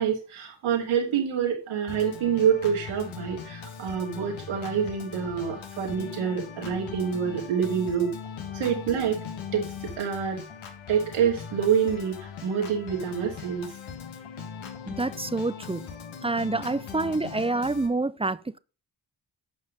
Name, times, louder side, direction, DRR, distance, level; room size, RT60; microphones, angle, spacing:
voice 1, 0.0-8.1 8.5-9.2 9.5-10.4 10.9-13.7, right 7 dB, 85° right, 2.6 m, -27 dB
Organ, 1.9-17.9, left 6 dB, 70° left, 1.7 m, -40 dB
voice 2, 14.9-15.9 16.2-18.6, right 2 dB, 10° right, 0.5 m, -27 dB
9.0 x 5.8 x 5.1 m
supercardioid pair, 40°, 48 cm